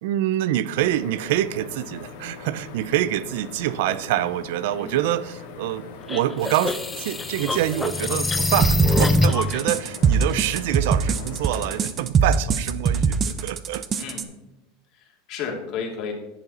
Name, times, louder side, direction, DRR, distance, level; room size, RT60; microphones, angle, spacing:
voice 1, 0.0-13.8, right 13 dB, 75° right, 17 dB, 0.5 m, -26 dB
sound 1, 0.7-11.8, left 4 dB, 85° left, 2.0 m, -41 dB
sound 2, 6.1-9.6, left 2 dB, 15° left, 0.6 m, -23 dB
sound 3, 8.6-14.2, right 6 dB, 30° right, 0.8 m, -22 dB
voice 2, 14.9-16.1, left 6 dB, 55° left, 1 dB, 2.5 m, -32 dB
11.0 x 8.1 x 4.2 m, 0.99 s
supercardioid pair, 130°, 0 cm